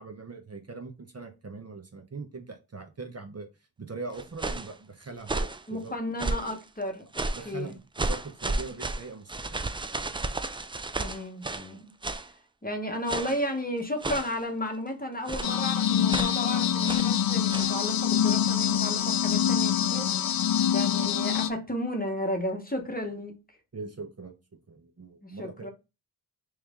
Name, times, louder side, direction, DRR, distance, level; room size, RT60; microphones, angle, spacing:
voice 1, 0.0-3.5 3.8-5.9 7.4-7.7 8.0-9.6 23.7-24.3 24.7-25.7, right 4 dB, 35° right, 0.8 m, -41 dB
sound 1, 4.1-4.7 5.2-5.6 6.2-6.6 7.1-7.5 8.0-11.7 12.0-12.3 13.1-13.5 14.0-14.4 15.3-15.6 16.1-16.4 16.9-17.1 17.5-17.8, right 2 dB, 15° right, 0.3 m, -32 dB
voice 2, 5.7-7.8 11.0-11.9 12.6-20.1 20.7-23.3 25.2-25.7, left 1 dB, 20° left, 1.0 m, -33 dB
sound 2, 15.4-21.5, left 9 dB, 55° left, 0.5 m, -25 dB
3.2 x 3.1 x 3.5 m
cardioid pair, 40°, 42 cm